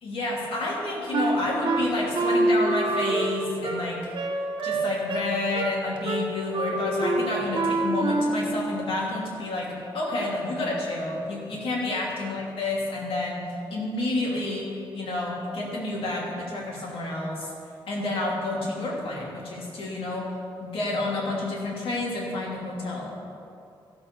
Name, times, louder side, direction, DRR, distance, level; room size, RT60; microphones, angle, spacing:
voice 1, 0.0-13.4 13.7-14.6 14.9-17.5 17.9-20.3 20.6-23.1, left 2 dB, 85° left, -3 dB, 2.8 m, -29 dB
Wind instrument woodwind instrument, 1.1-8.6, right 2 dB, 60° right, 1.1 m, -26 dB
14.0 x 6.4 x 6.8 m, 2.6 s
cardioid pair, 115°, 9 cm